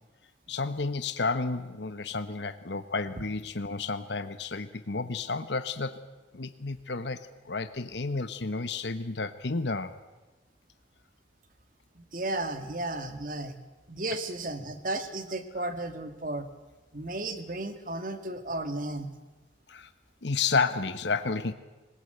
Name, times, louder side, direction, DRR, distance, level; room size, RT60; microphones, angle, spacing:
voice 1, 0.5-6.0 6.3-7.2 7.5-9.9 19.7-19.9 20.2-21.5, left 4 dB, 75° left, 11 dB, 1.1 m, -31 dB
voice 2, 12.0-13.6 13.9-16.5 16.9-19.1, right 2 dB, 45° right, 9 dB, 1.8 m, -34 dB
20.5 x 20.5 x 8.0 m, 1.2 s
head